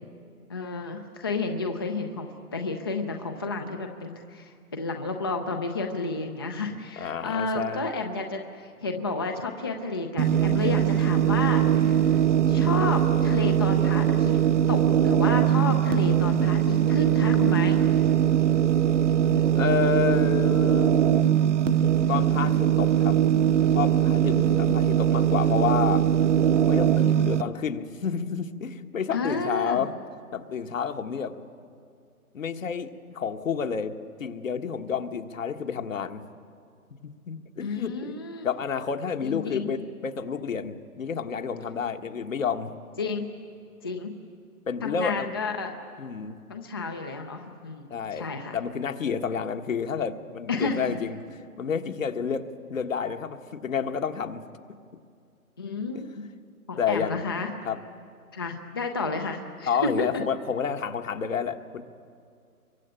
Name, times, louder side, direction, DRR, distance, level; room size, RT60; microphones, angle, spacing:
voice 1, 0.5-12.2 12.5-14.4 14.7-17.7 19.2-19.7 24.3-24.9 29.1-29.8 37.6-38.5 39.2-39.7 43.0-43.3 43.8-44.1 44.8-45.7 46.5-48.6 50.5-51.0 55.6-56.2 56.7-57.5 58.3-59.7, left 3 dB, 15° left, 4 dB, 0.6 m, -31 dB
voice 2, 7.0-7.8 19.5-21.4 22.1-23.2 23.7-26.1 26.7-29.9 30.3-31.3 32.3-36.2 37.0-38.1 38.4-42.7 44.7-45.3 46.0-46.4 47.9-48.3 48.5-51.2 51.6-54.4 55.9-56.0 56.8-57.3 57.6-57.8 59.7-61.8, left 6 dB, 60° left, 7 dB, 1.7 m, -30 dB
sound 1, 10.2-27.4, right 10 dB, 50° right, 1.0 m, -21 dB
24.0 x 23.0 x 9.0 m, 2.3 s
hypercardioid pair, 155°, 45 cm